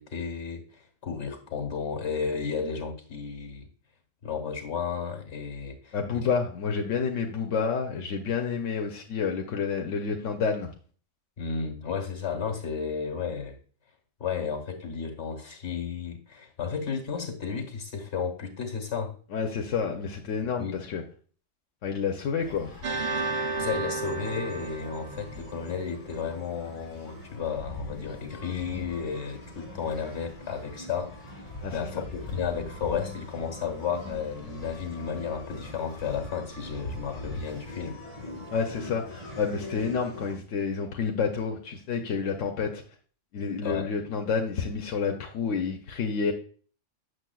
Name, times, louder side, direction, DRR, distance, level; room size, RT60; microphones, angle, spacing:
voice 1, 0.0-3.7 4.2-6.3 11.4-13.6 14.2-19.1 20.6-20.8 23.6-38.0 43.6-43.9, left 6 dB, 65° left, 4 dB, 1.7 m, -33 dB
voice 2, 5.9-10.7 19.3-21.0 21.8-22.7 31.6-32.0 38.5-42.8 43.3-46.3, left 5 dB, 90° left, 3 dB, 1.0 m, -29 dB
sound 1, 22.4-40.3, left 1 dB, 30° right, 3.5 m, -42 dB
sound 2, 22.8-26.2, right 3 dB, 45° right, 0.7 m, -33 dB
7.6 x 6.5 x 2.3 m, 0.42 s
omnidirectional pair, 1.2 m